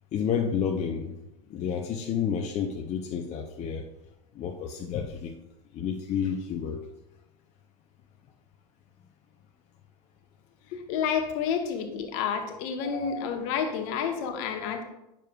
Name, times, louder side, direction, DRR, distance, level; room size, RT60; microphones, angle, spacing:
voice 1, 0.1-1.1 1.5-3.8 4.4-5.3 5.7-6.8 12.5-13.3 14.6-14.8, left 7 dB, 35° left, 2 dB, 0.7 m, -31 dB
voice 2, 10.7-14.8, left 7 dB, 55° left, 5 dB, 1.1 m, -30 dB
8.8 x 6.7 x 2.3 m, 0.90 s
hypercardioid pair, 90°, 20 cm